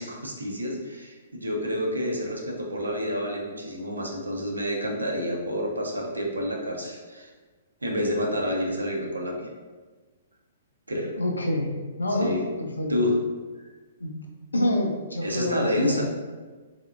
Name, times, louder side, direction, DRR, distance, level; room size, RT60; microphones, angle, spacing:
voice 1, 0.0-7.3 7.8-9.5 10.9-11.1 12.2-12.4 12.9-13.2 13.6-13.7 15.2-16.0, left 1 dB, 90° right, 0 dB, 0.7 m, -28 dB
voice 2, 11.2-11.7 12.0-12.3 12.6-13.0 14.0-14.2 14.5-16.0, left 1 dB, 85° left, 1 dB, 0.6 m, -27 dB
3.6 x 3.4 x 2.4 m, 1.4 s
figure-of-eight pair, 120°, 0 cm